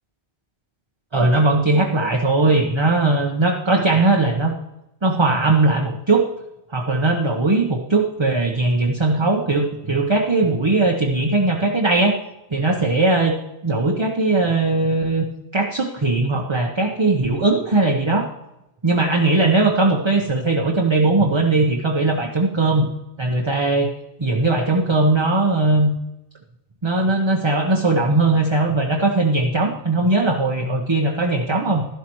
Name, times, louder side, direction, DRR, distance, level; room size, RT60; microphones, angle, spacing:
voice 1, 1.1-4.5 5.0-6.3 6.7-12.2 12.5-13.4 13.6-15.3 15.5-18.3 18.8-22.9 23.2-23.9 24.2-25.9 26.8-31.9, right 2 dB, 25° right, 0 dB, 0.9 m, -19 dB
12.0 x 11.5 x 3.0 m, 0.90 s
omnidirectional pair, 1.1 m